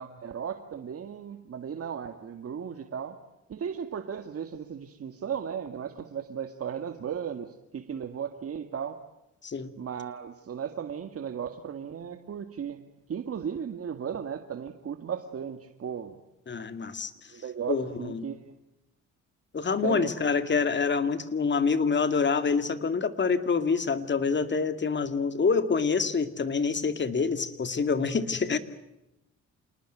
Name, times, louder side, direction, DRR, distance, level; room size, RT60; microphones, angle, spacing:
voice 1, 0.0-3.2 3.5-9.0 9.8-12.8 13.1-16.2 17.3-18.5 19.8-20.1, right 8 dB, 50° right, 7 dB, 1.9 m, -36 dB
voice 2, 16.5-17.1 17.7-18.3 19.5-28.6, left 5 dB, 35° left, 10 dB, 2.4 m, -26 dB
28.0 x 20.0 x 9.1 m, 0.90 s
cardioid pair, 90°, 30 cm